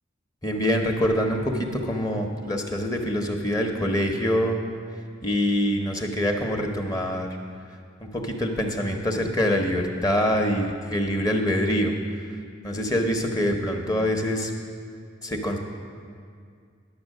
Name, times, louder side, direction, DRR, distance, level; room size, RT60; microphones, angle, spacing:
voice 1, 0.4-4.6 5.2-7.3 8.1-11.9 12.6-14.5 15.2-15.6, equal, 20° left, 2 dB, 0.7 m, -25 dB
10.5 x 6.8 x 6.4 m, 2.2 s
head